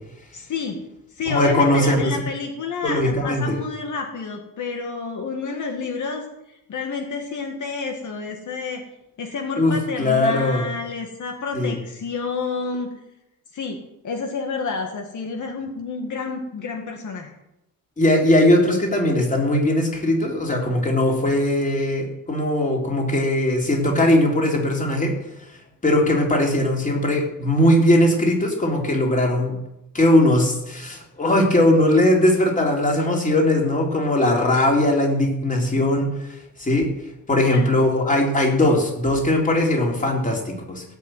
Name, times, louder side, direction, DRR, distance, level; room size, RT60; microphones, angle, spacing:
voice 1, 0.3-0.8 1.1-8.8 9.2-12.9 13.5-17.3 37.5-37.8, left 4 dB, 60° left, 3 dB, 2.3 m, -29 dB
voice 2, 1.3-2.1 2.8-3.6 9.6-10.6 11.5-11.8 18.0-25.1 25.8-29.5 29.9-36.1 36.6-36.9 37.3-40.8, left 1 dB, 20° left, 0 dB, 3.7 m, -19 dB
18.0 x 8.3 x 9.4 m, 0.89 s
wide cardioid pair, 155°, 35 cm